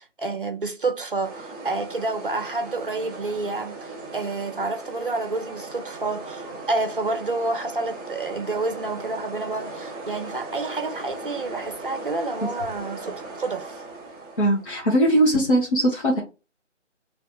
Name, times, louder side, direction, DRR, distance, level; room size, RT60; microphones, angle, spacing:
voice 1, 0.0-13.8, right 3 dB, 45° right, 0.6 m, -29 dB
sound 1, 1.2-14.6, right 3 dB, 15° left, 1.1 m, -38 dB
voice 2, 14.4-16.2, right 1 dB, 45° left, 0.8 m, -20 dB
2.7 x 2.4 x 3.6 m
figure-of-eight pair, 160°, 37 cm